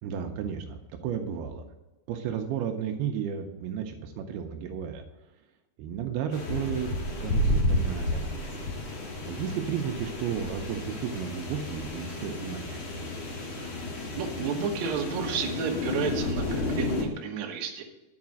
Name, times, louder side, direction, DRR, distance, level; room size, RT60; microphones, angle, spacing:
voice 1, 0.0-1.6 2.1-5.0 5.8-8.5 9.3-12.8, right 8 dB, 80° right, 5 dB, 2.6 m, -33 dB
sound 1, 6.3-17.0, left 1 dB, 55° left, 1.3 m, -31 dB
voice 2, 14.2-17.8, right 6 dB, 65° right, 1 dB, 2.0 m, -31 dB
10.5 x 4.8 x 7.4 m, 1.0 s
omnidirectional pair, 4.6 m